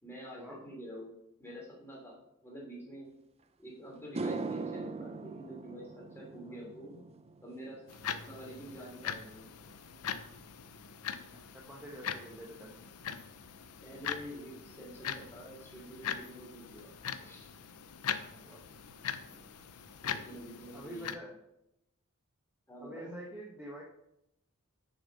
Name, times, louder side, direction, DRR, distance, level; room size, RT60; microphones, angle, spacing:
voice 1, 0.0-3.1 3.6-7.0 7.4-7.8 8.1-9.4 13.8-16.9 17.2-17.5 20.0-21.1 22.7-23.1, equal, 10° left, -4 dB, 3.3 m, -47 dB
sound 1, 3.4-3.5 4.0-12.5 12.8-13.2 16.8-16.9 18.5-18.6 18.9-19.1 19.3-19.9, right 3 dB, 30° right, 0.5 m, -43 dB
sound 2, 7.9-21.1, left 8 dB, 90° left, 0.6 m, -41 dB
voice 2, 11.3-12.8 18.3-18.6 20.7-21.3 22.8-23.8, right 1 dB, 5° right, -3 dB, 1.1 m, -47 dB
7.0 x 6.6 x 5.4 m, 0.84 s
head